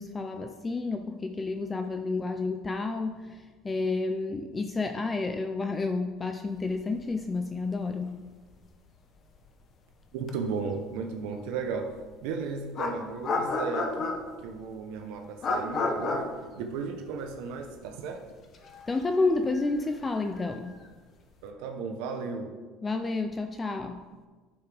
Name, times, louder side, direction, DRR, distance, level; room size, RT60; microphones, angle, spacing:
voice 1, 0.0-8.2 18.9-20.8 22.8-24.0, left 3 dB, 15° left, 6 dB, 0.4 m, -30 dB
sound 1, 7.6-7.7 7.9-8.1 10.3-10.4 12.1-12.2 12.7-14.5 15.4-17.4 17.7-17.8 18.5-20.9, left 3 dB, 35° left, 1.0 m, -32 dB
voice 2, 10.1-11.9 12.2-16.3 16.6-18.2 21.4-22.5, right 5 dB, 80° right, 3 dB, 0.9 m, -35 dB
11.5 x 7.1 x 3.4 m, 1.4 s
cardioid pair, 150°, 0 cm